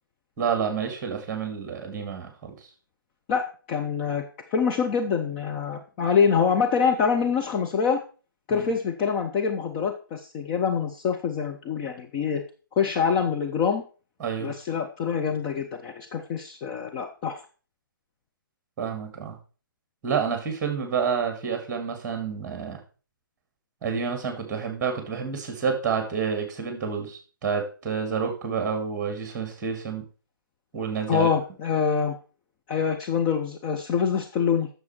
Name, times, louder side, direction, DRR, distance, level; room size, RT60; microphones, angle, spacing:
voice 1, 0.4-2.6 8.5-8.7 14.2-14.5 18.8-19.4 20.0-22.8 23.8-30.0 30.7-31.3, right 6 dB, 15° right, 5 dB, 2.0 m, -29 dB
voice 2, 3.3-4.2 4.5-8.0 8.5-12.4 12.8-13.8 14.4-17.4 31.1-32.2 32.7-34.7, left 6 dB, 20° left, 2 dB, 0.7 m, -25 dB
9.5 x 6.7 x 4.4 m, 0.37 s
figure-of-eight pair, 135°, 11 cm